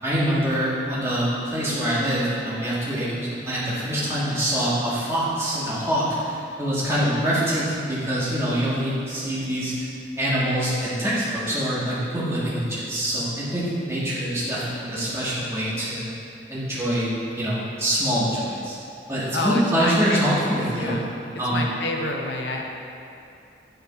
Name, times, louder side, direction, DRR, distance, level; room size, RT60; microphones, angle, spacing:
voice 1, 0.0-9.9 10.2-16.0 16.5-18.7 19.1-20.9 21.4-21.6, equal, 15° right, -9 dB, 1.5 m, -25 dB
voice 2, 19.3-20.4 20.8-21.1 21.5-22.6, left 2 dB, 75° left, 1 dB, 0.8 m, -28 dB
9.6 x 3.9 x 4.0 m, 2.7 s
head